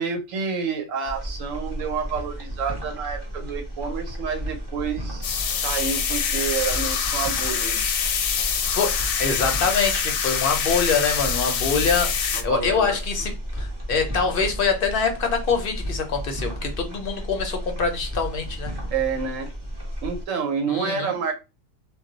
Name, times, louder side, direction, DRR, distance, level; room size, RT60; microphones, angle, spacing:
voice 1, 0.0-8.0 12.3-13.0 18.9-19.5 20.0-21.3, right 6 dB, 80° right, 1.0 m, -29 dB
sound 1, 1.1-20.2, equal, 25° right, 0.7 m, -33 dB
sound 2, 5.2-12.4, left 7 dB, 85° left, 1.0 m, -25 dB
voice 2, 8.4-18.7 20.7-21.1, left 5 dB, 60° left, 0.6 m, -25 dB
2.3 x 2.1 x 3.8 m
omnidirectional pair, 1.4 m